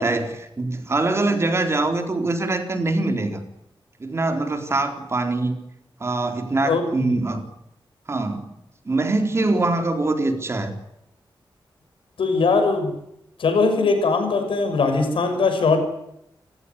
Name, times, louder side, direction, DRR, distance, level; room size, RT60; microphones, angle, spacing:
voice 1, 0.0-3.4 4.0-5.6 6.0-7.4 8.1-8.5 8.9-10.7, right 2 dB, 30° right, 6 dB, 4.0 m, -23 dB
voice 2, 6.6-7.1 12.2-12.9 13.4-15.8, left 4 dB, 90° left, 6 dB, 6.5 m, -20 dB
29.0 x 16.0 x 9.8 m, 0.80 s
wide cardioid pair, 155°, 9 cm